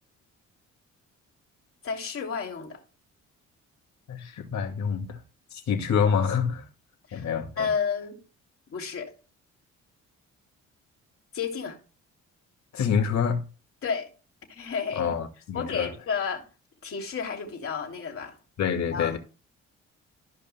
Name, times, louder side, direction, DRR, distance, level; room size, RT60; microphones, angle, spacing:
voice 1, 1.8-2.8 7.1-7.3 7.6-8.2 8.7-9.1 11.3-11.8 13.8-14.1 14.5-15.1 15.5-16.4 16.8-18.3 18.9-19.2, left 6 dB, 50° left, 2.9 m, -31 dB
voice 2, 4.1-5.2 5.5-6.7 7.1-7.7 12.7-13.4 15.0-15.9 18.6-19.2, left 7 dB, 65° left, 2.2 m, -27 dB
14.0 x 5.3 x 2.2 m
cardioid pair, 90°, 30 cm